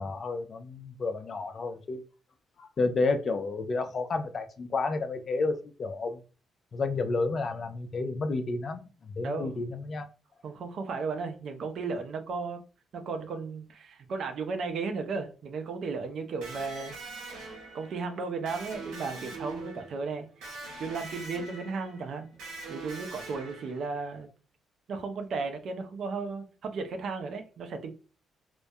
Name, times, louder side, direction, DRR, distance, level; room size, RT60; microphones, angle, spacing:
voice 1, 0.0-2.0 2.6-6.2 6.7-10.1, left 3 dB, 45° left, 0.4 m, -31 dB
voice 2, 9.2-9.6 10.4-12.6 12.9-17.0 17.7-20.3 20.8-22.3 22.7-24.3 24.9-27.9, right 4 dB, 65° right, 0.5 m, -35 dB
Electric guitar, 16.4-24.1, right 3 dB, 90° right, 0.9 m, -43 dB
2.2 x 2.1 x 2.6 m
cardioid pair, 90°, 0 cm